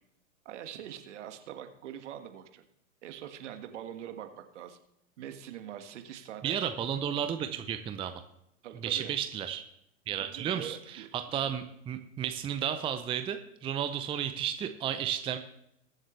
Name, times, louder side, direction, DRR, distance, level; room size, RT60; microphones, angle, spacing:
voice 1, 0.4-2.6 3.0-4.8 5.2-6.6 8.6-9.1 10.2-11.1, right 10 dB, 60° right, 7 dB, 1.7 m, -43 dB
voice 2, 6.4-8.2 8.8-9.6 10.1-15.4, right 9 dB, 15° right, 8 dB, 0.6 m, -33 dB
21.5 x 7.4 x 3.2 m, 0.78 s
hypercardioid pair, 110°, 39 cm